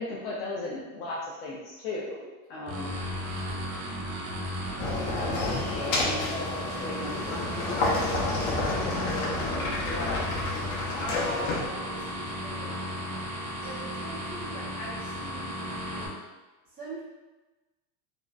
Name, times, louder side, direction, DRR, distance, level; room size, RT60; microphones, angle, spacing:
voice 1, 0.0-2.2 2.5-3.0 4.9-9.3 9.8-10.4, left 2 dB, 55° left, -6 dB, 0.5 m, -37 dB
voice 2, 2.1-2.7 9.2-9.7 10.9-13.2 13.6-16.1 16.6-17.0, right 2 dB, 20° right, -8 dB, 0.7 m, -45 dB
sound 1, 2.7-16.1, equal, 65° right, 0.7 m, -35 dB
sound 2, 4.8-11.7, left 2 dB, 90° left, 0.8 m, -30 dB
2.6 x 2.0 x 2.3 m, 1.2 s
supercardioid pair, 150°, 41 cm